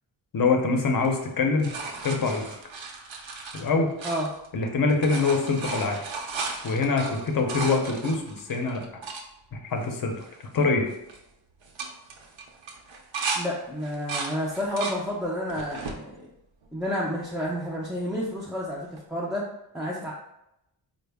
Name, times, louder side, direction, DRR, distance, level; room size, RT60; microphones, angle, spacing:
voice 1, 0.3-1.7 2.0-2.5 3.5-3.9 4.5-6.0 6.6-8.8 9.5-10.1 10.5-10.8, left 4 dB, 45° left, 4 dB, 0.6 m, -24 dB
sound 1, 1.0-4.6 4.9-9.2 9.8-9.9 10.1-10.6 10.9-11.2 11.6-13.4 13.8-15.0 15.5-16.0 16.6-17.4 19.0-19.1, right 4 dB, 75° right, 0.6 m, -35 dB
voice 2, 13.4-16.2 16.7-19.5 19.7-20.1, equal, ahead, -6 dB, 0.3 m, -30 dB
4.3 x 2.0 x 3.4 m, 0.85 s
wide cardioid pair, 160°, 46 cm